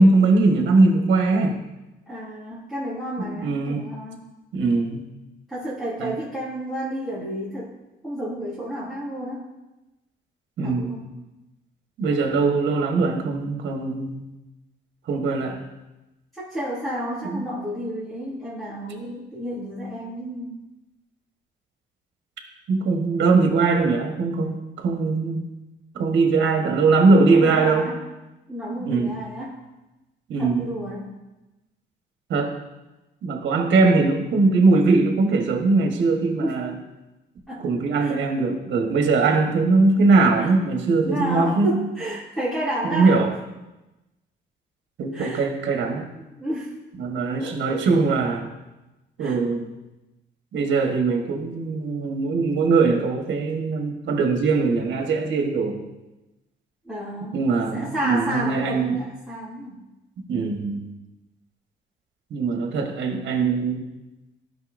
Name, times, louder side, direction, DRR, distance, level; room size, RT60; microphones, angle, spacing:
voice 1, 0.0-1.5 3.2-3.8 4.5-5.0 6.0-6.1 10.6-10.9 12.0-14.2 15.1-15.6 17.2-17.5 22.7-25.4 25.9-27.9 28.8-29.1 30.3-30.7 32.3-32.5 33.2-36.7 37.6-41.7 42.8-43.3 45.0-46.0 47.0-48.5 49.2-49.6 50.5-55.8 57.3-59.0 60.3-60.9 62.3-63.8, right 3 dB, 65° right, 3 dB, 1.3 m, -21 dB
voice 2, 2.1-4.2 5.5-7.7 8.0-9.5 10.6-11.1 16.3-20.6 27.3-28.0 28.5-29.6 30.4-31.1 36.4-36.6 37.5-37.6 38.0-38.1 38.5-38.6 40.4-40.5 41.0-43.1 45.1-45.5 46.4-46.7 47.4-47.8 49.2-49.4 56.8-57.4 57.7-59.8, equal, ahead, -10 dB, 2.6 m, -31 dB
12.5 x 5.7 x 2.6 m, 1.0 s
cardioid pair, 90°, 20 cm